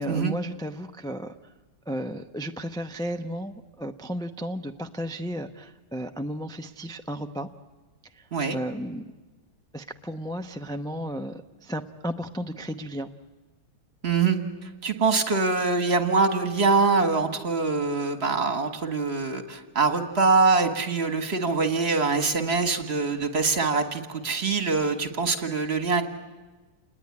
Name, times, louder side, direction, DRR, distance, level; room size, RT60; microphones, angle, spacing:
voice 1, 0.0-1.3 1.9-7.5 8.1-9.0 9.7-13.1, equal, 5° left, 6 dB, 0.4 m, -34 dB
voice 2, 14.0-14.4 14.8-26.0, right 4 dB, 40° right, 7 dB, 1.9 m, -24 dB
28.5 x 20.0 x 9.7 m, 1.2 s
omnidirectional pair, 1.8 m